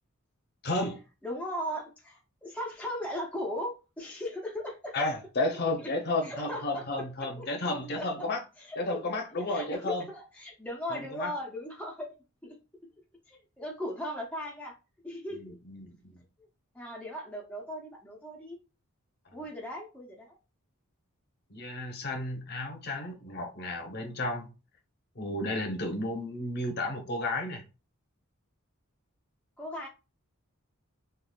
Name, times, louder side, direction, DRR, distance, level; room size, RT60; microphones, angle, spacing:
voice 1, 0.6-1.0 4.9-8.4 8.8-10.1 10.9-11.3 15.3-16.2 21.5-24.5 25.2-27.6, left 2 dB, 50° left, 0.8 m, -32 dB
voice 2, 1.2-5.1 5.8-5.9 6.2-6.9 7.2-7.5 7.9-8.2 8.6-8.8 9.5-12.1 12.4-12.6 13.3-14.7 15.0-15.6 16.7-18.6 19.3-20.4 29.6-29.9, equal, 5° left, 0.5 m, -37 dB
3.6 x 2.3 x 2.3 m
head